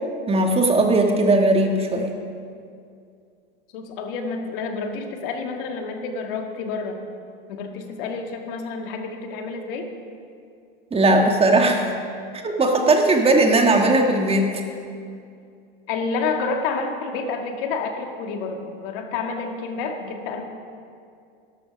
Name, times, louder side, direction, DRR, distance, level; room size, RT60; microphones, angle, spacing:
voice 1, 0.3-2.1 10.9-11.9 12.4-14.5, right 2 dB, 20° right, 3 dB, 1.6 m, -18 dB
voice 2, 3.7-7.0 7.5-9.9 15.9-20.4, left 4 dB, 65° left, 4 dB, 1.7 m, -29 dB
12.5 x 12.5 x 5.1 m, 2.4 s
hypercardioid pair, 105°, 30 cm